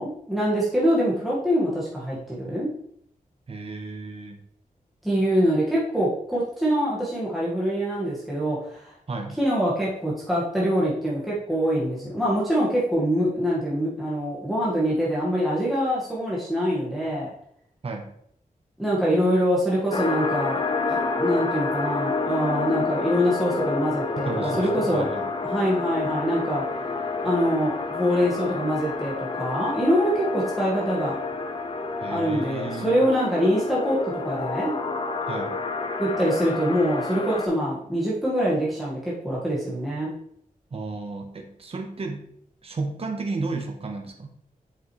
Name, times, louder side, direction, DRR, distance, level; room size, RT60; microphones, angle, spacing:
voice 1, 0.0-2.7 5.0-8.9 9.4-17.3 18.8-20.6 20.9-25.1 25.4-26.6 27.2-31.2 32.1-34.0 34.2-34.7 36.0-40.1, equal, ahead, -7 dB, 1.7 m, -24 dB
voice 2, 3.5-4.4 9.1-9.4 17.8-18.1 24.1-25.3 32.0-33.0 35.3-35.5 40.7-42.3 42.6-44.3, right 3 dB, 40° right, 3 dB, 1.0 m, -33 dB
sound 1, 19.9-37.5, left 3 dB, 35° left, 0.7 m, -29 dB
7.7 x 5.9 x 3.2 m, 0.70 s
wide cardioid pair, 150°, 15 cm